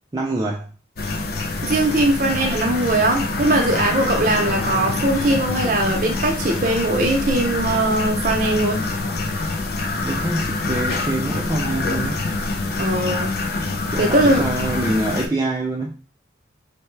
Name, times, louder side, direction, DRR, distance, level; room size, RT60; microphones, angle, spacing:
voice 1, 0.1-0.7 10.0-12.2 13.9-16.0, right 2 dB, 20° right, -2 dB, 0.3 m, -25 dB
sound 1, 1.0-15.3, left 3 dB, 50° left, 0.4 m, -25 dB
voice 2, 1.6-8.8 12.8-13.4 14.0-14.5, right 1 dB, 45° right, 2 dB, 0.7 m, -20 dB
4.2 x 2.2 x 3.2 m, 0.34 s
head